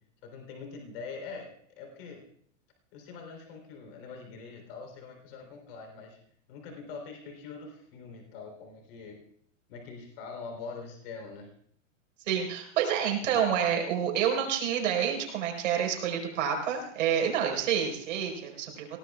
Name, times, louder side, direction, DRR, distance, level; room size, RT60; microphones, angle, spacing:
voice 1, 0.2-2.2 2.9-6.2 6.5-9.2 9.7-11.5, left 4 dB, 45° left, 3 dB, 3.6 m, -43 dB
voice 2, 12.3-18.9, right 8 dB, 70° right, 1 dB, 4.6 m, -28 dB
27.0 x 18.0 x 2.4 m, 0.65 s
supercardioid pair, 170°, 39 cm